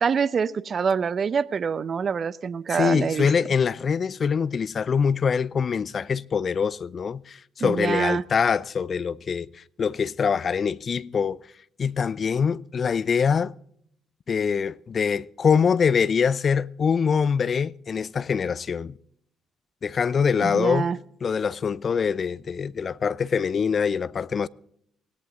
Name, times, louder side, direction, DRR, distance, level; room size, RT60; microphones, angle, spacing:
voice 1, 0.0-3.3 7.6-8.2 20.4-21.0, right 6 dB, 45° right, 0.7 m, -25 dB
voice 2, 2.7-9.5 9.8-11.4 11.8-13.5 14.3-18.9 19.8-20.9 21.2-24.5, left 6 dB, 45° left, 0.5 m, -24 dB
18.0 x 17.0 x 3.8 m
hypercardioid pair, 50°, 0 cm